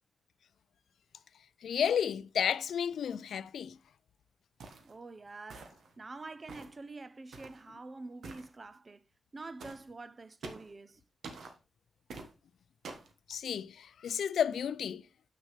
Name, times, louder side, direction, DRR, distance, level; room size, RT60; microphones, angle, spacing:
voice 1, 1.6-3.8 13.3-15.0, left 8 dB, 85° left, 0.3 m, -32 dB
sound 1, 4.6-4.9 5.5-5.9 6.5-6.8 7.3-7.6 8.2-8.5 9.6-9.8 10.4-10.7 11.2-11.5 12.1-12.3 12.8-13.1, right 3 dB, 75° right, 1.3 m, -46 dB
voice 2, 4.8-9.0 9.3-11.0, right 3 dB, 25° right, 0.4 m, -47 dB
7.5 x 6.4 x 3.2 m
wide cardioid pair, 180°, 0 cm